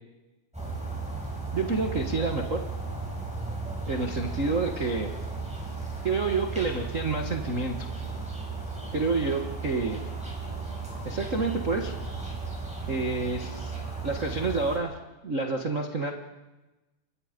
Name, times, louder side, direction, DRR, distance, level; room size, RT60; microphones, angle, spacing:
sound 1, 0.5-14.8, right 4 dB, ahead, 7.0 m, -35 dB
voice 1, 1.5-2.6 3.9-5.1 6.0-7.9 8.9-10.0 11.0-11.9 12.9-13.7 14.0-15.0 15.2-16.1, right 3 dB, 85° right, 1 dB, 0.6 m, -28 dB
29.5 x 24.5 x 5.3 m, 1.1 s
omnidirectional pair, 4.1 m